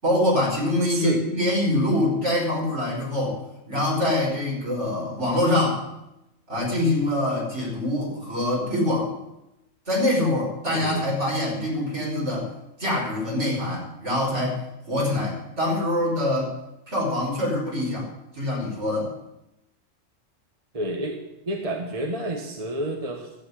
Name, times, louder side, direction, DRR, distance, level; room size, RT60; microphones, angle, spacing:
voice 1, 0.0-3.4 3.7-5.9 6.5-9.1 9.9-12.5 12.8-16.6 16.9-18.1 18.3-19.1, left 1 dB, 60° right, -3 dB, 5.5 m, -24 dB
voice 2, 0.9-1.2 10.7-11.1 20.7-21.2 21.5-23.3, right 1 dB, 30° right, 2 dB, 1.5 m, -29 dB
13.0 x 8.3 x 9.9 m, 0.91 s
omnidirectional pair, 1.3 m